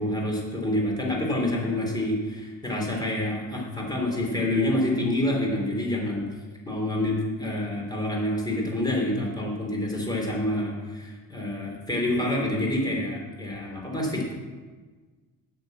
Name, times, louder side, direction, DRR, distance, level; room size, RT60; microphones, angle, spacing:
voice 1, 0.0-6.3 6.7-14.3, left 1 dB, 10° left, -1 dB, 3.3 m, -27 dB
8.9 x 7.2 x 8.2 m, 1.4 s
cardioid pair, 135°, 34 cm